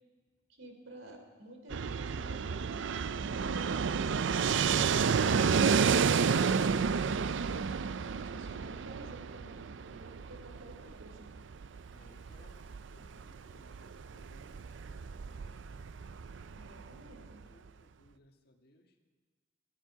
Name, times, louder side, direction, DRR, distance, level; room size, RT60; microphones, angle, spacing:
voice 1, 0.5-7.7 8.3-11.3 16.5-17.4, right 1 dB, 90° right, 3 dB, 3.3 m, -52 dB
Fixed-wing aircraft airplane, 1.7-17.4, right 6 dB, 65° right, 0.4 m, -31 dB
voice 2, 8.1-8.7 11.9-12.7 12.9-15.8 17.0-17.2 17.5-18.8, left 1 dB, 55° left, 3 dB, 1.7 m, -62 dB
22.5 x 13.5 x 4.8 m, 1.5 s
head